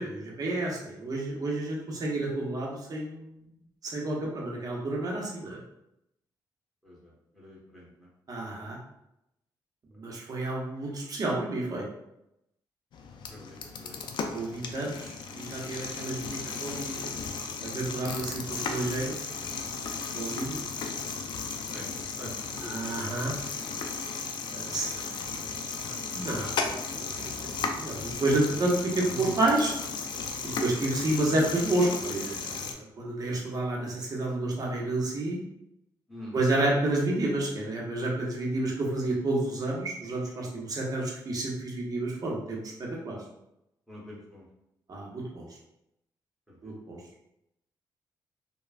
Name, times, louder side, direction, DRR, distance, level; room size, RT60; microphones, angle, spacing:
voice 1, 0.0-3.4 3.8-5.6 8.3-8.8 10.0-11.8 14.3-17.1 17.6-19.1 20.1-20.6 22.6-23.3 24.5-24.9 26.1-26.8 27.2-29.7 30.6-35.4 36.3-42.6 43.0-43.2 44.9-45.5 46.6-47.0, right 2 dB, 50° right, -2 dB, 0.8 m, -30 dB
voice 2, 6.8-8.1 13.3-14.0 16.4-16.8 21.7-22.9 24.9-26.0 29.1-29.4 36.1-36.4 43.9-44.4 46.5-46.7, right 1 dB, ahead, -5 dB, 1.2 m, -45 dB
sound 1, 12.9-32.7, left 5 dB, 70° left, 0.4 m, -35 dB
3.2 x 2.2 x 2.4 m, 0.85 s
cardioid pair, 85°, 8 cm